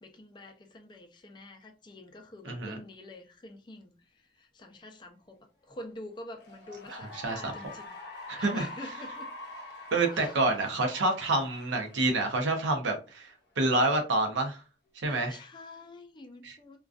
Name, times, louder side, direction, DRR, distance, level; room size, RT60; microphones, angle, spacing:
voice 1, 0.0-3.9 4.3-5.4 5.7-8.0 8.3-9.3 10.1-10.3 15.1-16.8, left 1 dB, 25° left, 0.4 m, -47 dB
voice 2, 2.4-2.8 6.9-7.5 8.3-8.7 9.9-14.6 15.0-15.4 16.4-16.6, right 2 dB, 90° right, 0.6 m, -28 dB
Cheering / Applause, 6.3-12.9, left 1 dB, 65° left, 0.7 m, -45 dB
2.4 x 2.2 x 2.3 m
head